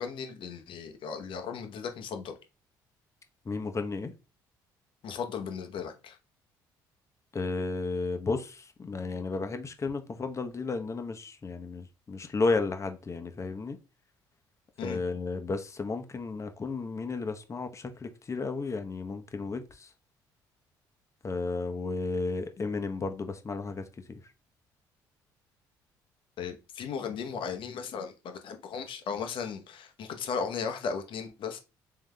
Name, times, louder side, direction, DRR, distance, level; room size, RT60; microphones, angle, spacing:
voice 1, 0.0-2.4 5.0-6.2 14.8-15.0 26.4-31.6, left 6 dB, 60° left, 0.9 m, -36 dB
voice 2, 3.4-4.1 7.3-13.8 14.8-19.9 21.2-24.2, left 3 dB, 30° left, 0.9 m, -33 dB
3.7 x 3.4 x 3.3 m
supercardioid pair, 65°, 10 cm